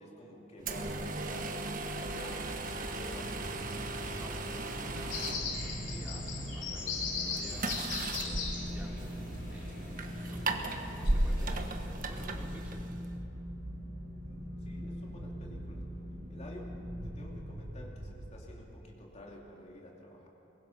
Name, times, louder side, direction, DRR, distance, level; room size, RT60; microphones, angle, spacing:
voice 1, 0.0-1.6 2.0-3.6 3.9-4.2 14.2-15.9 16.3-16.7 17.0-20.3, left 1 dB, 40° left, -1 dB, 3.0 m, -50 dB
sound 1, 0.6-13.1, right 2 dB, 50° right, 1.4 m, -37 dB
sound 2, 1.6-18.8, equal, 65° right, 2.5 m, -42 dB
voice 2, 4.2-6.2 6.5-7.7 8.2-9.2 9.5-12.8, equal, 10° right, -3 dB, 2.8 m, -52 dB
sound 3, 5.1-11.6, left 4 dB, 75° left, 3.5 m, -39 dB
23.0 x 21.5 x 5.9 m, 2.9 s
head